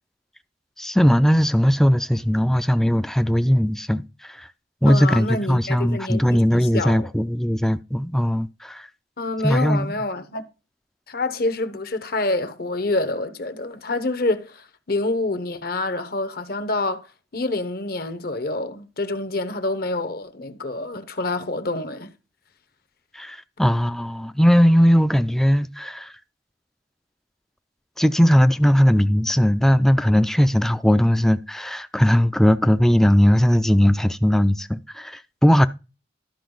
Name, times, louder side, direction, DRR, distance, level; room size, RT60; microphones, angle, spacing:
voice 1, 0.8-4.5 4.8-8.9 9.4-9.9 23.1-26.1 28.0-35.7, equal, ahead, 0.4 m, -19 dB
voice 2, 4.9-7.1 9.2-10.4 11.1-17.1 17.3-22.1, left 2 dB, 55° left, 1.0 m, -27 dB
12.5 x 5.4 x 3.9 m
head